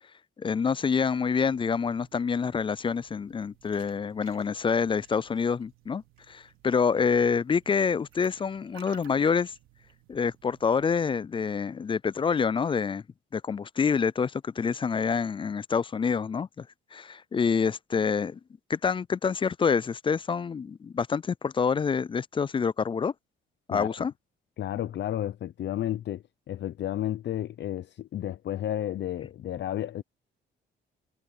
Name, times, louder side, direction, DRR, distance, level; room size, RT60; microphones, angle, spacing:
voice 1, 0.4-9.5 10.1-13.0 13.3-16.7 16.9-18.4 18.7-23.1 23.7-24.1, left 6 dB, 25° left, 0.3 m, -27 dB
sound 1, 1.0-11.0, right 12 dB, 80° right, 4.4 m, -58 dB
voice 2, 23.7-24.1 24.6-30.0, left 12 dB, 65° left, 0.9 m, -32 dB
cardioid pair, 90°, 20 cm